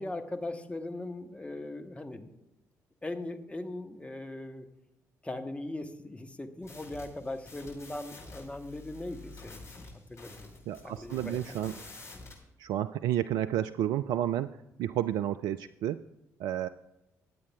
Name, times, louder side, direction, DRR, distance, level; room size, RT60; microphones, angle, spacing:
voice 1, 0.0-2.3 3.0-4.7 5.2-11.6, left 2 dB, 15° left, 5 dB, 1.2 m, -40 dB
sound 1, 6.6-12.4, left 3 dB, 35° left, 4.6 m, -49 dB
voice 2, 10.7-11.7 12.6-14.5 14.8-16.0 16.4-16.7, right 11 dB, 60° right, 12 dB, 0.3 m, -31 dB
23.5 x 8.4 x 2.4 m, 0.91 s
figure-of-eight pair, 45°, 9 cm